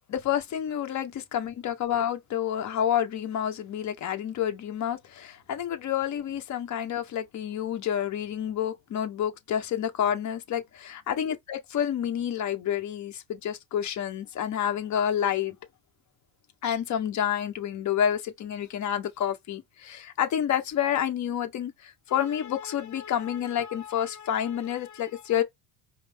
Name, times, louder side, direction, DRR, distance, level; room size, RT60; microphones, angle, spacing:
voice 1, 0.1-15.6 16.6-25.4, left 9 dB, 45° left, 1.2 m, -29 dB
5.0 x 2.1 x 3.5 m
cardioid pair, 115°, 40 cm